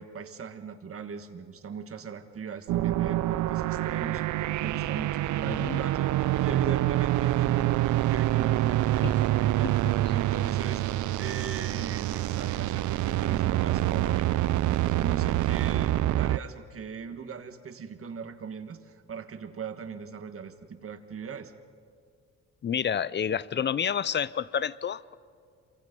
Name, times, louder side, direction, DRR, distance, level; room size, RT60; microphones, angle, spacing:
voice 1, 0.0-4.2 4.6-9.7 10.1-10.8 11.2-21.5, right 6 dB, 45° right, 1.6 m, -39 dB
sound 1, 2.7-16.4, right 15 dB, 75° right, 0.5 m, -26 dB
voice 2, 5.5-5.8 9.0-9.1 22.6-25.1, left 8 dB, 35° left, 0.6 m, -29 dB
27.0 x 23.5 x 5.3 m
cardioid pair, 90°, 30 cm